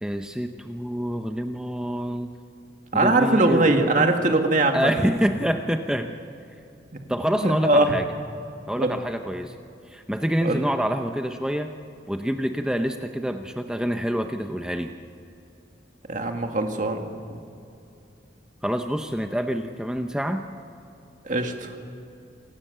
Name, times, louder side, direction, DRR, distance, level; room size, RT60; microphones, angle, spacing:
voice 1, 0.0-2.3 2.9-3.9 4.7-6.1 7.1-8.1 8.7-9.5 9.9-11.7 12.1-14.9 18.6-20.4, equal, 5° right, 5 dB, 0.7 m, -26 dB
voice 2, 2.9-4.9 7.4-8.0 8.8-9.0 10.4-10.6 16.1-17.1 21.3-21.8, right 2 dB, 45° right, 4 dB, 2.0 m, -21 dB
27.5 x 17.5 x 6.8 m, 2.6 s
head